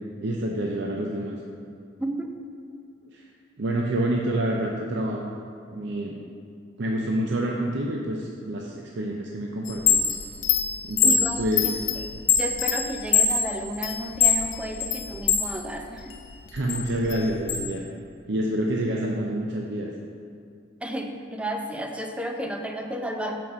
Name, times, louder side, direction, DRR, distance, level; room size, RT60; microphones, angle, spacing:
voice 1, 0.2-1.4 3.1-3.3 3.6-5.3 5.7-6.2 6.8-10.1 10.8-11.8 16.5-17.8 18.3-19.9, right 1 dB, 70° right, -1 dB, 0.6 m, -28 dB
voice 2, 2.0-2.3 11.0-11.8 12.4-16.1 20.8-23.4, equal, 5° right, 3 dB, 0.5 m, -32 dB
Chime, 9.7-15.5 15.9-17.6, left 7 dB, 75° left, 0.7 m, -23 dB
5.6 x 5.4 x 6.6 m, 2.4 s
head